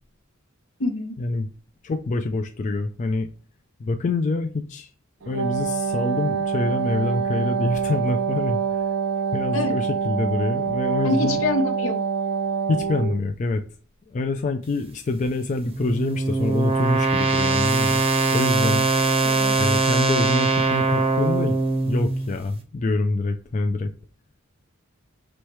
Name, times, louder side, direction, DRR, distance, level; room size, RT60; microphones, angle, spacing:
voice 1, 0.8-1.1 9.5-9.8 11.0-12.0 19.2-19.5, left 2 dB, 75° left, 0.8 m, -25 dB
voice 2, 1.8-3.3 3.8-4.9 5.2-8.9 9.3-11.4 12.7-13.6 14.1-18.0 18.3-18.9 19.6-21.6 21.8-23.9, left 2 dB, 35° left, 0.3 m, -26 dB
Wind instrument woodwind instrument, 5.2-13.2, right 6 dB, 65° right, 0.6 m, -25 dB
sound 1, 15.2-22.4, right 3 dB, 30° right, 0.7 m, -22 dB
3.1 x 3.1 x 4.5 m
head